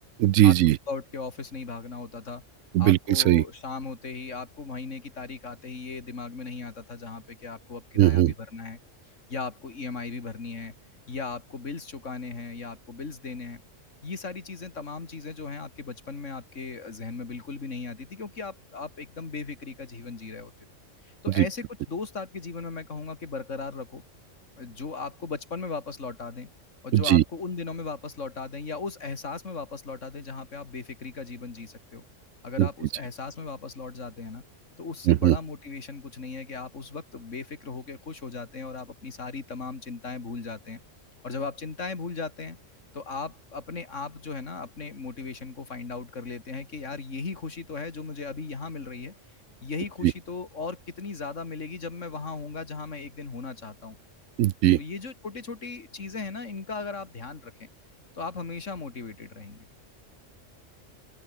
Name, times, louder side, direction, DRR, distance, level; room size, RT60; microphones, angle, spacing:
voice 1, 0.2-0.8 2.7-3.4 8.0-8.3 21.4-21.5 26.9-27.2 32.6-32.7 35.1-35.4 54.4-54.8, right 14 dB, 90° right, 1.0 m, -19 dB
voice 2, 0.9-2.4 2.8-8.8 9.3-10.7 11.1-13.6 14.0-20.5 21.0-24.0 24.6-26.5 26.8-32.0 32.4-34.4 34.8-40.8 41.2-42.6 42.9-49.1 49.6-54.0 54.7-57.7 58.1-59.7, left 4 dB, 70° left, 2.8 m, -37 dB
open air
omnidirectional pair, 1.3 m